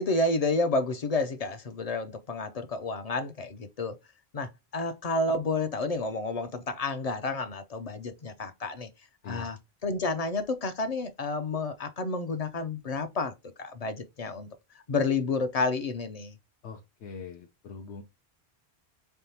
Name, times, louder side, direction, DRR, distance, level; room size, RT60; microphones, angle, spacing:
voice 1, 0.0-3.9 4.3-8.9 9.2-9.6 9.8-13.3 13.6-14.5 14.9-16.3, left 3 dB, 50° left, 0.4 m, -30 dB
voice 2, 9.2-9.5 16.6-18.0, left 5 dB, 90° left, 0.9 m, -42 dB
3.9 x 3.5 x 2.7 m
omnidirectional pair, 1.1 m